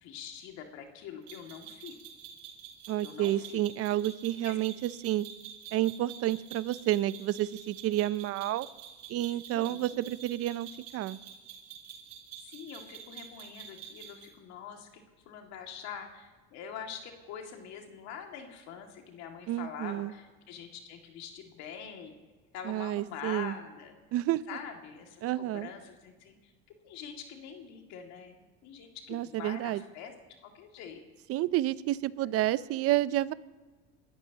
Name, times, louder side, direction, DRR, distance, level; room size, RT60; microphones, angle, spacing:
voice 1, 0.0-2.0 3.0-3.6 4.4-4.6 9.5-10.1 12.4-22.1 22.5-24.0 24.5-26.5 26.8-30.1 30.4-31.0, left 7 dB, 65° left, 2.3 m, -45 dB
sound 1, 1.3-14.3, right 8 dB, 80° right, 4.1 m, -48 dB
voice 2, 2.9-5.3 5.7-8.7 9.1-11.2 19.5-20.1 22.7-23.5 24.1-24.4 25.2-25.7 29.1-29.8 31.3-33.3, right 14 dB, 55° right, 0.6 m, -30 dB
28.5 x 13.5 x 2.9 m
supercardioid pair, 95°, 29 cm